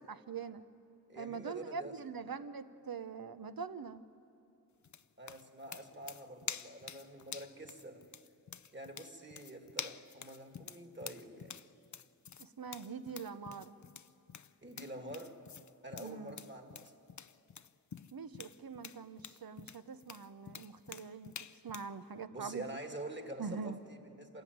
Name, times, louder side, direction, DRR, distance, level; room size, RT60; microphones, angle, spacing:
voice 1, 0.1-0.6 1.2-4.0 12.4-13.7 16.0-16.4 18.1-21.3 21.6-22.6 23.4-23.8, right 5 dB, 70° right, 12 dB, 0.9 m, -43 dB
voice 2, 1.1-2.0 5.2-8.1 8.7-11.6 14.6-15.4 15.8-16.9 22.3-24.4, right 1 dB, 30° right, 5 dB, 2.2 m, -47 dB
sound 1, 4.8-21.9, left 7 dB, 50° left, 0.5 m, -48 dB
27.0 x 17.0 x 9.4 m, 2.7 s
wide cardioid pair, 70°, 37 cm